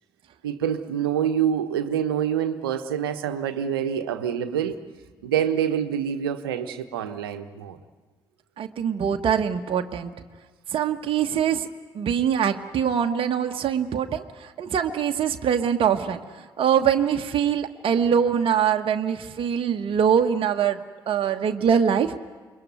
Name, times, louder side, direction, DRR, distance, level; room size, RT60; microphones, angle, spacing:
voice 1, 0.4-4.8 5.2-7.8, right 9 dB, 80° right, 10 dB, 1.1 m, -26 dB
voice 2, 8.6-10.1 10.7-11.7 11.9-20.8 21.1-22.2, right 8 dB, 50° right, 4 dB, 1.3 m, -23 dB
27.5 x 23.0 x 9.4 m, 1.4 s
figure-of-eight pair, 45°, 12 cm